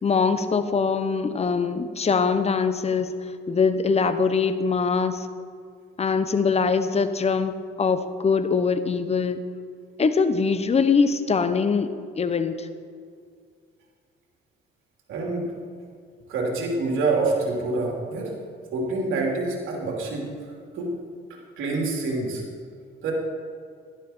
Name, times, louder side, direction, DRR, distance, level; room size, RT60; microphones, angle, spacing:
voice 1, 0.0-3.1 3.5-5.3 6.0-9.4 10.0-12.7, left 5 dB, 30° left, 10 dB, 0.9 m, -23 dB
voice 2, 15.1-15.5 16.3-18.3 18.7-20.3 20.7-20.9 21.6-22.4 23.0-23.1, right 3 dB, 80° right, -1 dB, 3.1 m, -26 dB
12.0 x 11.5 x 4.4 m, 2.2 s
cardioid pair, 90°, 20 cm